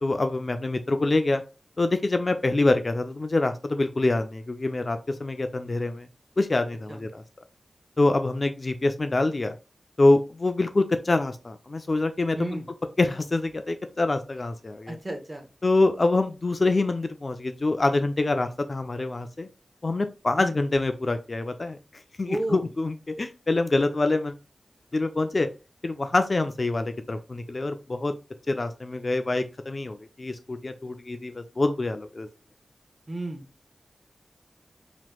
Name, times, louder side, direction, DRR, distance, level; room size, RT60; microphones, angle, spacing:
voice 1, 0.0-1.4 1.8-6.1 6.4-7.2 8.0-9.5 10.0-12.6 13.0-15.0 15.6-19.5 19.8-21.8 22.2-24.3 24.9-25.5 25.8-28.1 28.5-32.3, left 2 dB, 45° left, 8 dB, 0.4 m, -25 dB
voice 2, 12.3-12.7 14.9-15.5 20.4-20.6 22.3-22.7 33.1-33.4, right 1 dB, 25° right, 4 dB, 0.9 m, -32 dB
3.3 x 3.0 x 2.3 m, 0.29 s
wide cardioid pair, 65°, 0 cm